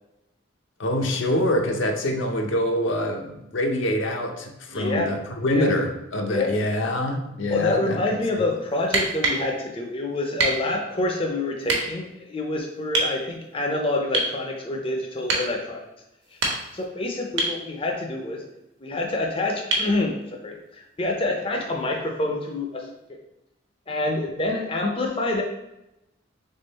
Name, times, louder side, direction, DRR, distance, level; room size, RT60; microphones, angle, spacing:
voice 1, 0.8-8.1, left 1 dB, 70° left, 3 dB, 0.6 m, -25 dB
voice 2, 4.7-5.1 5.5-5.7 6.3-6.5 7.5-15.9 16.7-18.4 18.8-20.2 20.4-22.9 23.9-25.4, left 2 dB, 25° left, 1 dB, 0.5 m, -27 dB
sound 1, 8.8-9.5 10.4-10.6 11.7-11.8 12.9-13.1 14.1-14.4 15.3-15.5 16.2-16.8 17.4-17.6 19.7-19.9 21.8-21.9, right 2 dB, 60° right, 1.0 m, -24 dB
3.7 x 3.5 x 3.9 m, 0.91 s
head